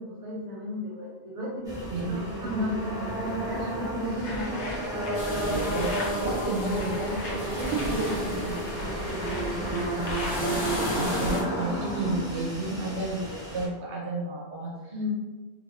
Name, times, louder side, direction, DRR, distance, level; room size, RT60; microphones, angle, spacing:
voice 1, 0.0-4.6 14.9-15.1, left 2 dB, 50° right, -7 dB, 0.8 m, -35 dB
sound 1, 1.6-13.7, right 1 dB, 5° right, 0.5 m, -32 dB
sound 2, 4.0-10.8, left 1 dB, 85° left, 1.0 m, -38 dB
sound 3, 5.1-11.4, left 1 dB, 55° left, 0.8 m, -36 dB
voice 2, 5.5-8.9 9.2-15.1, right 2 dB, 80° right, -5 dB, 1.0 m, -33 dB
2.6 x 2.0 x 2.4 m, 1.3 s
omnidirectional pair, 1.1 m